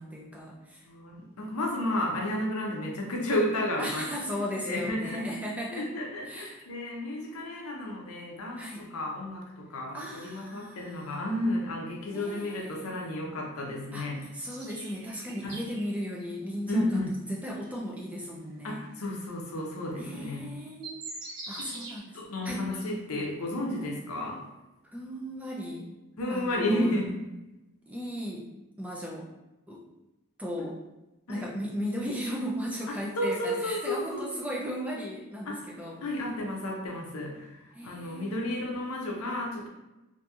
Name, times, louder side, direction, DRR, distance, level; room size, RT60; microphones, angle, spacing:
voice 1, 0.0-0.8 3.8-5.9 6.3-6.6 8.6-8.9 9.9-11.2 12.1-13.1 13.9-17.0 17.3-18.8 20.0-21.0 21.5-22.2 22.4-22.7 24.9-25.9 26.3-26.9 27.9-28.5 28.8-29.3 29.7-29.8 30.4-30.8 31.3-36.0 37.7-38.3, equal, 5° right, -3 dB, 0.3 m, -36 dB
voice 2, 0.8-4.1 4.6-5.3 5.7-14.3 15.4-15.6 16.7-17.1 18.6-20.5 21.6-21.7 22.1-24.4 26.2-27.1 30.6-30.7 31.3-31.4 33.2-34.3 35.5-35.6 36.0-39.7, left 1 dB, 80° left, 0 dB, 0.6 m, -32 dB
sound 1, 14.4-16.4 17.0-17.1 17.6-17.7 18.7-18.8 20.2-20.3 20.6-22.0, right 2 dB, 50° right, 0.9 m, -43 dB
2.8 x 2.6 x 2.3 m, 1.0 s
head